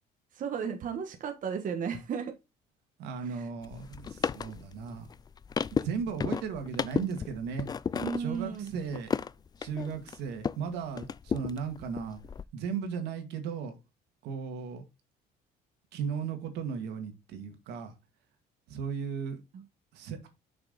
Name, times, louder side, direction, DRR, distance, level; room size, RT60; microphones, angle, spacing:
voice 1, 0.3-2.3 3.2-3.3 7.9-8.7 19.5-19.6, right 7 dB, 50° right, 5 dB, 1.3 m, -34 dB
voice 2, 3.0-5.1 5.7-7.7 8.2-9.1 9.6-12.2 12.5-13.8 14.2-14.8 15.9-17.9 18.7-19.4 19.9-20.3, right 6 dB, 85° right, 6 dB, 2.1 m, -36 dB
sound 1, 3.6-10.7 11.0-12.4, left 6 dB, 25° left, 0.3 m, -34 dB
6.7 x 5.9 x 4.0 m, 0.25 s
cardioid pair, 110°, 17 cm